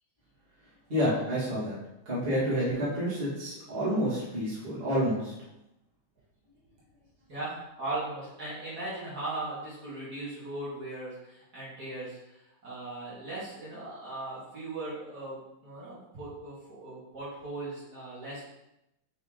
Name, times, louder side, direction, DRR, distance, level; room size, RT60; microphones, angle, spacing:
voice 1, 0.9-1.8 2.1-5.3, equal, 25° right, -8 dB, 2.2 m, -29 dB
voice 2, 7.3-18.4, right 2 dB, 50° right, -9 dB, 2.5 m, -38 dB
5.7 x 5.2 x 3.8 m, 0.88 s
omnidirectional pair, 2.3 m